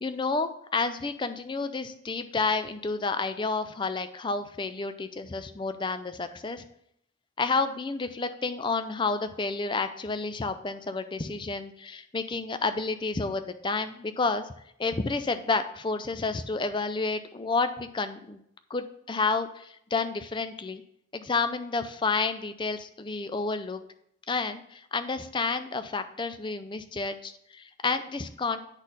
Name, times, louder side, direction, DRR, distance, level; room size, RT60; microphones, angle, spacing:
voice 1, 0.0-6.6 7.4-14.5 14.8-18.4 18.7-20.8 21.1-23.8 24.3-28.6, left 4 dB, 25° left, 10 dB, 0.4 m, -30 dB
9.7 x 4.2 x 3.9 m, 0.71 s
head